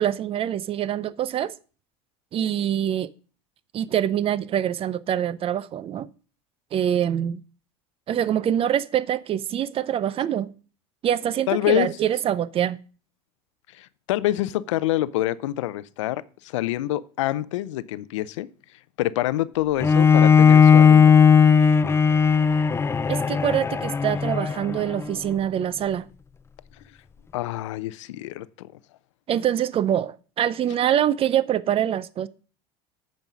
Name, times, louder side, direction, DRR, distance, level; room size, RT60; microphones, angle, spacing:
voice 1, 0.0-1.5 2.3-3.1 3.7-6.1 6.7-7.4 8.1-10.5 11.0-12.8 23.1-26.1 29.3-32.3, right 10 dB, 40° right, 0.5 m, -24 dB
voice 2, 11.5-11.9 13.7-18.5 19.0-21.1 27.3-28.5, left 15 dB, 90° left, 0.5 m, -26 dB
Bowed string instrument, 19.8-25.0, left 6 dB, 15° left, 0.4 m, -16 dB
9.1 x 5.3 x 6.1 m
supercardioid pair, 100°, 15 cm